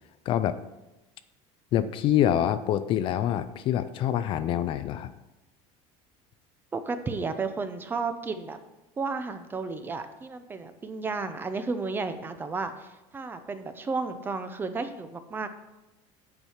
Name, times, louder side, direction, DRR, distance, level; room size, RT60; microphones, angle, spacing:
voice 1, 0.3-0.6 1.7-5.1, left 11 dB, 40° left, 12 dB, 0.4 m, -26 dB
voice 2, 6.7-8.6 9.0-15.5, right 4 dB, 15° right, 9 dB, 0.5 m, -33 dB
8.6 x 4.6 x 7.2 m, 0.99 s
cardioid pair, 170°, 14 cm